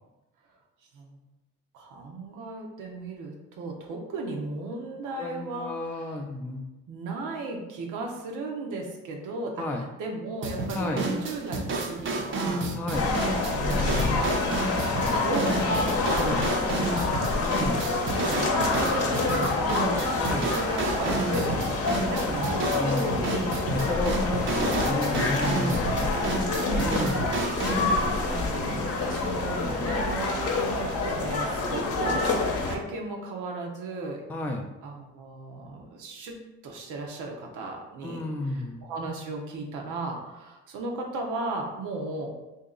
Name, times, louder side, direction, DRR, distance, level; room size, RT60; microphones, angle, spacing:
voice 1, 1.7-6.2 6.9-12.6 13.4-14.3 15.2-16.9 17.5-23.5 25.7-27.0 27.6-27.9 28.3-32.3 32.6-34.2 34.8-42.3, right 2 dB, 85° right, 1 dB, 0.8 m, -36 dB
voice 2, 5.2-6.6 9.6-9.8 10.7-11.1 12.7-13.2 16.1-16.4 17.4-17.8 20.2-20.5 22.8-23.1 23.7-26.0 26.8-27.3 34.3-34.7 38.0-38.8, left 2 dB, 5° left, 1 dB, 0.4 m, -31 dB
sound 1, 10.4-27.9, right 2 dB, 40° right, 0.6 m, -31 dB
sound 2, 12.9-32.8, left 3 dB, 50° left, 0.7 m, -27 dB
2.8 x 2.8 x 3.7 m, 1.0 s
cardioid pair, 90°, 30 cm